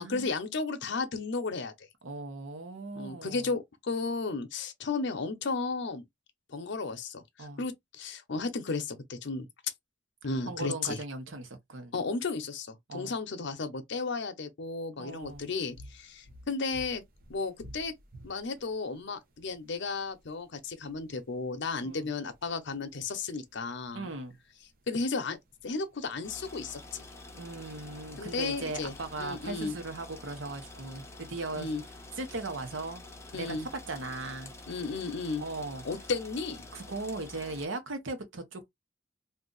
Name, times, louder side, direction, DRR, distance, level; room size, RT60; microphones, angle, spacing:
voice 1, 0.0-1.7 2.9-6.0 6.5-9.7 10.2-11.0 11.9-17.0 17.3-17.9 18.2-24.1 24.9-25.4 25.6-27.0 28.2-29.7 31.5-31.8 33.3-33.7 34.7-35.4 35.8-36.7, left 4 dB, 65° left, 0.7 m, -34 dB
voice 2, 2.0-3.4 7.4-7.6 10.5-11.9 12.9-13.1 15.0-15.5 21.8-22.1 23.9-24.3 27.3-31.7 32.2-33.0 33.3-33.6 33.9-34.5 35.4-35.8 36.7-38.7, right 2 dB, 80° right, 0.9 m, -38 dB
sound 1, 15.1-31.0, equal, 50° right, 0.8 m, -56 dB
sound 2, 26.2-37.7, left 2 dB, 15° left, 0.6 m, -48 dB
2.7 x 2.4 x 3.8 m
head